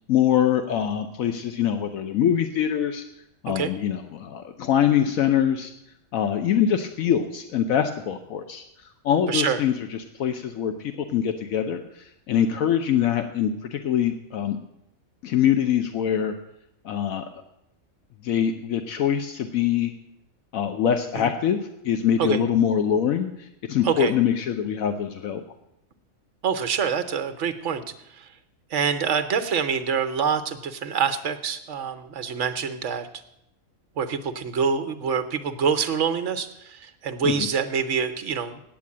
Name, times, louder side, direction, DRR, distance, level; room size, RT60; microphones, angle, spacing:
voice 1, 0.1-3.0 3.4-5.7 6.1-8.6 9.0-14.6 15.2-16.3 16.8-17.2 18.2-19.9 20.5-21.6 21.8-25.4 37.2-37.5, left 9 dB, 75° left, 7 dB, 1.1 m, -24 dB
voice 2, 9.3-9.6 21.1-21.3 22.2-22.4 23.8-24.1 26.4-27.8 28.2-28.3 28.7-33.1 34.0-38.6, right 6 dB, 60° right, 9 dB, 1.1 m, -26 dB
8.7 x 8.4 x 8.4 m, 0.82 s
omnidirectional pair, 1.4 m